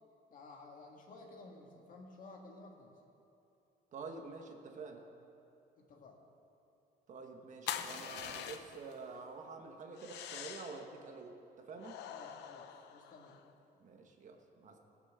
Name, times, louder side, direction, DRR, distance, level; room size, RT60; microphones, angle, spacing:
voice 1, 0.3-3.0 5.8-6.2 12.1-13.4, left 3 dB, 50° left, 1 dB, 1.9 m, -54 dB
voice 2, 3.9-5.0 7.1-12.0 13.8-14.8, right 4 dB, 45° right, 3 dB, 1.3 m, -48 dB
sound 1, 7.7-8.9 10.0-10.9 11.8-13.5, left 9 dB, 85° left, 0.7 m, -44 dB
16.5 x 6.2 x 7.4 m, 2.8 s
cardioid pair, 130°, 17 cm